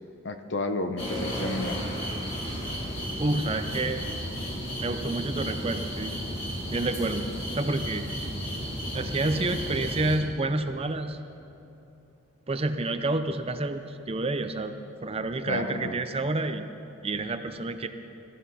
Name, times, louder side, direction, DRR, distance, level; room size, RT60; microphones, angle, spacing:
voice 1, 0.2-1.8 15.5-16.0, left 2 dB, 55° left, 7 dB, 0.9 m, -31 dB
sound 1, 1.0-10.2, equal, 30° left, 3.4 m, -33 dB
voice 2, 3.2-4.0 4.8-6.1 6.7-7.3 7.6-8.1 8.9-11.2 12.5-14.7 15.0-16.7 17.0-17.9, right 2 dB, 25° right, 8 dB, 0.5 m, -29 dB
21.5 x 14.5 x 4.2 m, 2.9 s
head